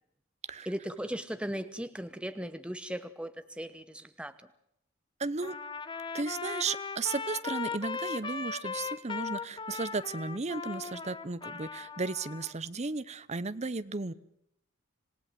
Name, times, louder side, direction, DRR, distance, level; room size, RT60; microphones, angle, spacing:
voice 1, 0.6-4.4, equal, 5° right, 11 dB, 0.8 m, -37 dB
voice 2, 5.2-5.5 6.1-14.1, right 3 dB, 35° right, 15 dB, 0.8 m, -34 dB
Trumpet, 5.4-12.5, left 5 dB, 25° left, 1.2 m, -38 dB
27.0 x 17.0 x 7.6 m, 0.78 s
head